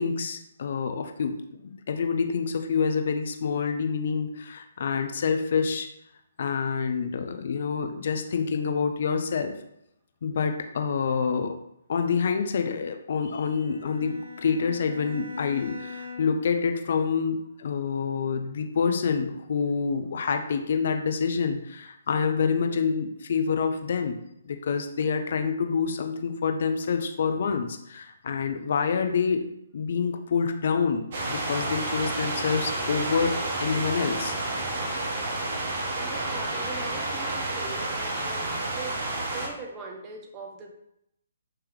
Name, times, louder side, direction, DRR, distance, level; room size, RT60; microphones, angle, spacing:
voice 1, 0.0-1.4 1.6-5.9 6.4-9.5 10.2-11.5 11.9-24.2 24.4-29.5 29.7-34.4, left 5 dB, 50° left, 6 dB, 0.4 m, -27 dB
Bowed string instrument, 13.4-16.5, left 4 dB, 85° right, 0.7 m, -42 dB
sound 1, 31.1-39.5, right 2 dB, 45° right, 0.9 m, -30 dB
voice 2, 36.0-39.0 39.3-40.7, right 3 dB, 20° right, 1 dB, 0.6 m, -41 dB
3.2 x 2.9 x 3.5 m, 0.77 s
figure-of-eight pair, 130°, 0 cm